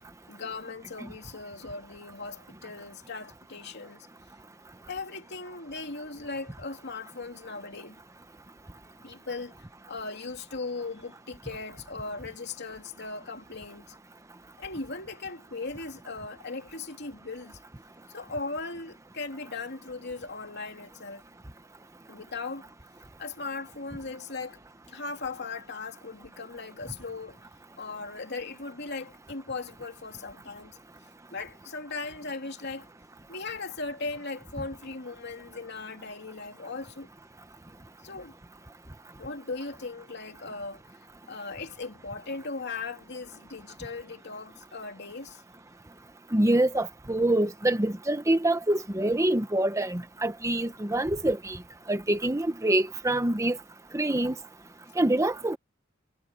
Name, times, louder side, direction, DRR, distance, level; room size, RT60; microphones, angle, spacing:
voice 1, 0.3-4.1 4.9-8.0 9.0-9.5 9.9-13.9 14.6-17.6 18.1-21.2 22.1-22.7 23.2-24.6 24.9-27.4 27.8-30.8 31.3-32.9 33.3-37.1 38.0-38.3 39.2-40.8 41.3-45.4, left 3 dB, 55° left, 2.8 m, -38 dB
voice 2, 46.3-51.6 51.9-53.6 53.9-54.3 55.0-55.6, right 1 dB, 15° right, 1.0 m, -25 dB
head